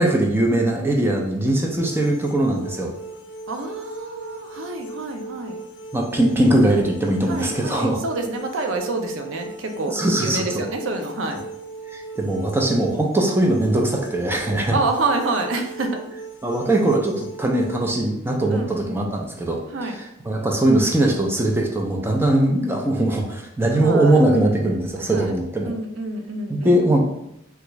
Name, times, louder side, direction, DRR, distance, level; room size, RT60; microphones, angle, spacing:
voice 1, 0.0-2.9 5.9-8.0 9.9-10.4 11.9-14.8 16.4-25.7 26.5-27.0, right 1 dB, 10° right, 1 dB, 0.4 m, -20 dB
sound 1, 1.8-17.7, right 2 dB, 75° left, 0.4 m, -38 dB
voice 2, 3.5-5.6 7.3-11.4 14.7-16.0 18.5-19.2 19.7-20.0 23.8-24.2 25.1-25.3 25.6-26.8, right 3 dB, 80° right, 5 dB, 0.5 m, -27 dB
3.5 x 2.4 x 3.0 m, 0.82 s
head